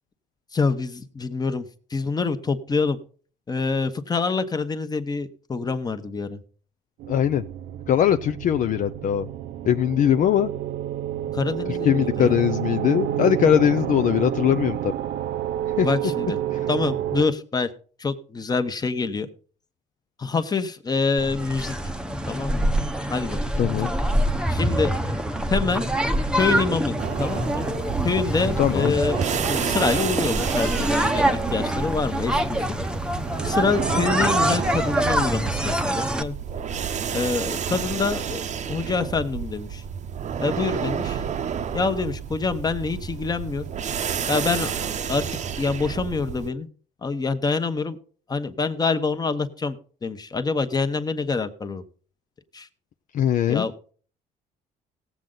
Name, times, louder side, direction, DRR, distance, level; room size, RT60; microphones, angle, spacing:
voice 1, 0.5-3.0 3.5-6.4 11.3-12.3 15.8-16.4 16.7-17.7 18.0-19.3 20.2-21.7 22.3-22.7 23.1-23.4 24.5-25.2 25.5-25.8 26.4-27.6 28.0-32.7 33.4-36.4 37.1-39.8 40.4-41.2 41.7-43.6 44.3-45.2 45.6-46.7 47.0-48.0 48.3-51.8 52.5-52.7 53.5-53.7, left 4 dB, 25° left, 10 dB, 1.1 m, -26 dB
sound 1, 7.0-17.3, right 12 dB, 80° right, 0.7 m, -29 dB
voice 2, 7.1-7.4 7.9-9.3 9.6-10.5 11.7-14.9 15.8-15.9 16.5-16.7 23.6-23.9 28.6-29.0 53.1-53.7, left 10 dB, 50° left, 9 dB, 0.5 m, -21 dB
sound 2, 21.2-36.2, right 1 dB, 5° right, 0.8 m, -25 dB
sound 3, 27.0-46.5, right 8 dB, 45° right, 0.8 m, -30 dB
17.5 x 7.7 x 3.9 m, 0.43 s
cardioid pair, 110°, 17 cm